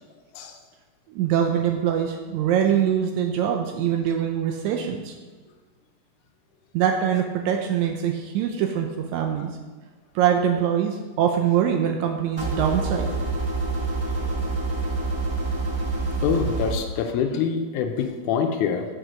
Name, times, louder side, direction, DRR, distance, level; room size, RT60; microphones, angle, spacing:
voice 1, 1.2-5.1 6.7-9.5 10.2-13.1, right 9 dB, 80° right, 3 dB, 1.8 m, -23 dB
sound 1, 12.4-16.8, right 3 dB, 15° right, 1.1 m, -26 dB
voice 2, 16.2-18.9, left 7 dB, 80° left, 6 dB, 1.9 m, -25 dB
6.4 x 4.7 x 6.2 m, 1.3 s
omnidirectional pair, 3.7 m